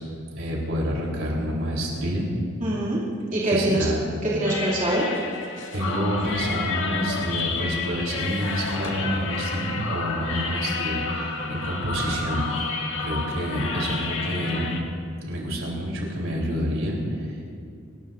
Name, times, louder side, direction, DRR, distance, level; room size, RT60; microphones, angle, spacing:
voice 1, 0.4-2.3 3.5-4.0 5.7-14.7 15.3-17.3, equal, 75° right, -2 dB, 3.7 m, -28 dB
voice 2, 2.6-3.0 3.3-3.9 4.2-5.1, right 1 dB, 35° right, -6 dB, 2.7 m, -23 dB
sound 1, 4.4-14.8, left 4 dB, 65° left, 1.7 m, -30 dB
28.0 x 13.5 x 2.6 m, 2.4 s
head